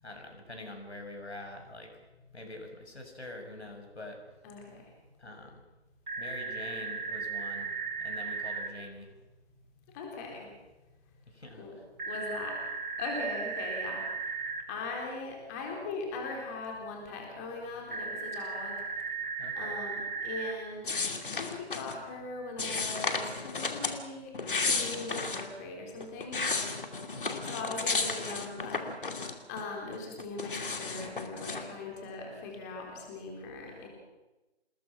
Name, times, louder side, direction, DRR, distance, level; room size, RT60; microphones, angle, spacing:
voice 1, 0.0-1.9 2.3-4.2 5.2-5.6 6.2-7.7 8.0-9.1 11.3-11.8 19.4-19.8 27.1-27.4, left 1 dB, 70° left, 3 dB, 7.2 m, -45 dB
voice 2, 4.4-4.9 9.9-10.5 11.6-11.7 12.1-12.6 13.0-14.0 14.7-18.8 19.5-20.9 21.2-26.4 27.5-28.8 29.2-33.9, left 3 dB, 15° left, 0 dB, 3.9 m, -40 dB
dial-up, 6.1-8.7 12.0-14.6 17.9-20.5, right 5 dB, 45° right, 2.9 m, -36 dB
sound 1, 20.8-22.0 22.6-24.0 24.3-25.5 26.0-29.6 29.9-31.7, left 4 dB, 50° left, 2.7 m, -33 dB
27.5 x 20.5 x 6.1 m, 1.1 s
figure-of-eight pair, 155°, 34 cm